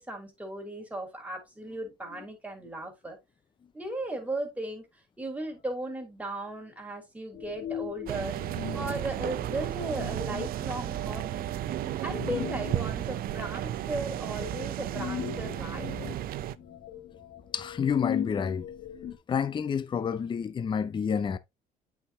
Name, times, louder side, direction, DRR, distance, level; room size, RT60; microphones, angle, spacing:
voice 1, 0.0-3.2 3.7-4.8 5.2-8.4 8.7-11.5 12.0-15.9, right 1 dB, 10° right, 2.9 m, -36 dB
sound 1, 7.3-19.2, left 10 dB, 55° left, 1.7 m, -40 dB
sound 2, 8.1-16.5, right 13 dB, 60° right, 0.5 m, -33 dB
voice 2, 17.5-18.7 19.3-21.4, left 7 dB, 30° left, 0.5 m, -29 dB
8.4 x 4.8 x 2.8 m
cardioid pair, 110°, 17 cm